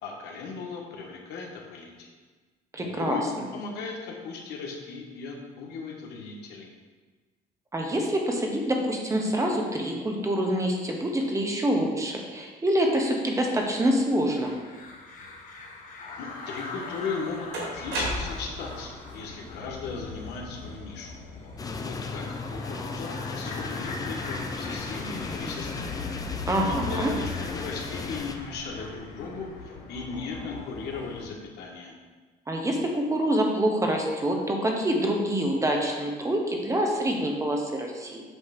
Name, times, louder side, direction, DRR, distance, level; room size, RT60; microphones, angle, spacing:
voice 1, 0.0-2.1 2.8-3.2 3.5-6.7 16.2-21.1 21.8-25.9 26.7-31.9, left 4 dB, 80° left, -1 dB, 1.4 m, -37 dB
voice 2, 2.7-3.2 7.7-14.5 26.5-27.1 32.5-38.2, right 1 dB, 20° right, 1 dB, 1.1 m, -26 dB
sound 1, 14.3-31.3, left 4 dB, 50° left, 1.3 m, -39 dB
sound 2, 16.6-16.7 17.5-18.6, right 1 dB, 85° right, 1.9 m, -31 dB
sound 3, 21.6-28.4, left 4 dB, 20° left, 0.5 m, -36 dB
7.8 x 3.2 x 5.9 m, 1.4 s
cardioid pair, 110°, 17 cm